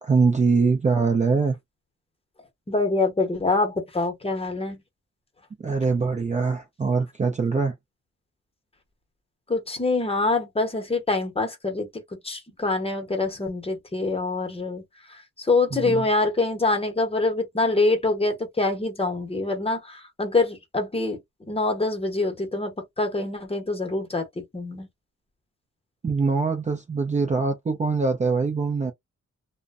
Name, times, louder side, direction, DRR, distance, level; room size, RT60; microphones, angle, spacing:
voice 1, 0.0-1.5 5.6-7.7 15.7-16.1 26.0-28.9, right 4 dB, 25° right, 0.4 m, -23 dB
voice 2, 2.7-4.8 9.5-11.9 12.2-14.8 15.4-21.2 21.5-24.9, left 3 dB, 20° left, 0.8 m, -25 dB
2.5 x 2.1 x 2.4 m
wide cardioid pair, 115°, 30 cm